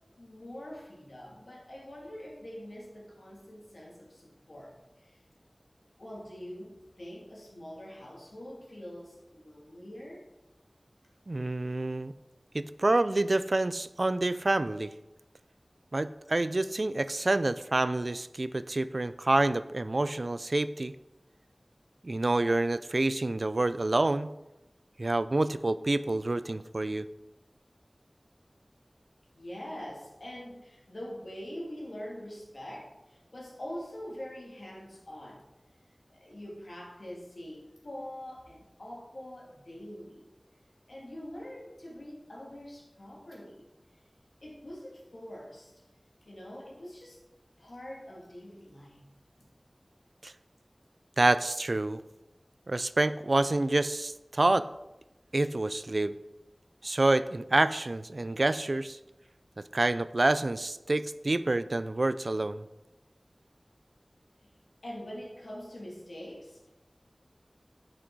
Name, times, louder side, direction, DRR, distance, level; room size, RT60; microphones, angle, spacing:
voice 1, 0.2-5.2 6.0-10.2 29.3-35.5 36.1-40.3 40.9-43.7 44.4-45.7 46.2-47.2 47.6-49.0 64.4-64.5 64.8-66.7, equal, 85° left, -3 dB, 2.4 m, -44 dB
voice 2, 11.3-12.1 12.5-14.9 15.9-20.9 22.0-24.3 25.0-27.1 50.2-50.3 51.2-52.0 52.7-54.7 55.3-56.2 56.8-59.0 59.7-62.6, right 2 dB, 65° right, 14 dB, 0.4 m, -27 dB
8.6 x 6.2 x 4.6 m, 0.98 s
wide cardioid pair, 50°, 0 cm